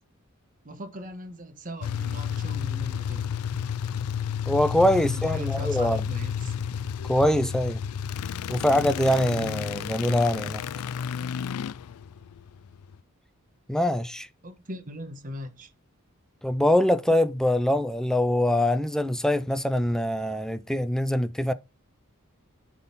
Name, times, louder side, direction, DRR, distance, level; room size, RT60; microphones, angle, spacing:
voice 1, 0.6-3.4 4.7-6.5 14.4-15.7, equal, 40° right, 1.2 m, -40 dB
sound 1, 1.8-12.9, left 7 dB, 85° left, 0.4 m, -31 dB
voice 2, 4.5-6.0 7.1-7.8 8.5-10.6 13.7-14.3 16.4-21.5, left 1 dB, 5° left, 0.4 m, -23 dB
11.0 x 3.7 x 4.0 m
head